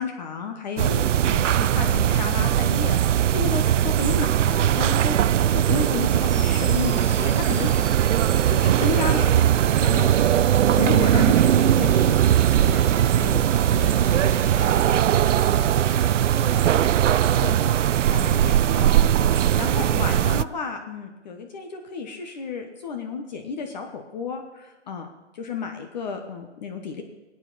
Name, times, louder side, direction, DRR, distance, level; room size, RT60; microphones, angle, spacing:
voice 1, 0.0-5.2 5.5-7.8 8.5-9.3 9.8-12.8 13.1-13.4 13.7-13.9 17.4-17.5 18.1-18.9 19.6-25.1 25.3-27.0, left 5 dB, 35° left, 4 dB, 1.2 m, -32 dB
sound 1, 0.8-20.4, right 10 dB, 85° right, 0.5 m, -20 dB
sound 2, 6.2-18.4, left 4 dB, 85° left, 1.6 m, -45 dB
sound 3, 9.5-17.0, left 1 dB, 20° left, 2.6 m, -46 dB
voice 2, 13.5-19.7, right 3 dB, 15° right, -2 dB, 2.0 m, -46 dB
16.5 x 9.1 x 4.1 m, 1.1 s
hypercardioid pair, 150°, 36 cm